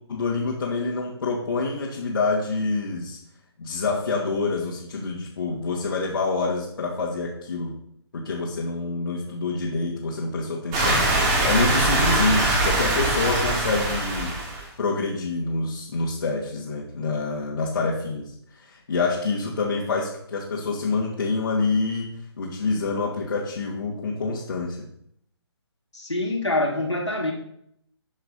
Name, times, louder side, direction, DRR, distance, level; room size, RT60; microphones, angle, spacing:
voice 1, 0.1-3.2 3.6-7.7 8.1-14.3 14.8-22.1 22.4-24.8, left 3 dB, 55° left, -4 dB, 2.5 m, -27 dB
Medium heavy rain, 10.7-14.6, right 2 dB, 20° right, 2.5 m, -22 dB
voice 2, 25.9-27.3, left 2 dB, 90° left, 0 dB, 3.3 m, -25 dB
12.0 x 5.8 x 5.6 m, 0.72 s
figure-of-eight pair, 145°, 14 cm